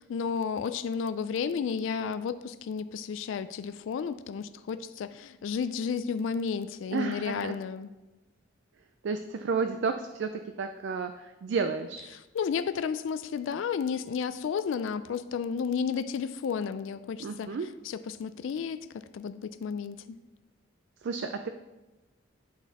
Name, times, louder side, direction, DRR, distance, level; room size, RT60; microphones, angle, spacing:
voice 1, 0.0-7.9 12.3-17.6 17.8-18.8 19.1-20.2, left 6 dB, 70° left, 13 dB, 0.3 m, -32 dB
voice 2, 6.9-7.6 9.0-12.1 17.2-17.7 21.0-21.5, right 5 dB, 60° right, 8 dB, 0.3 m, -32 dB
10.5 x 4.1 x 4.0 m, 1.1 s
head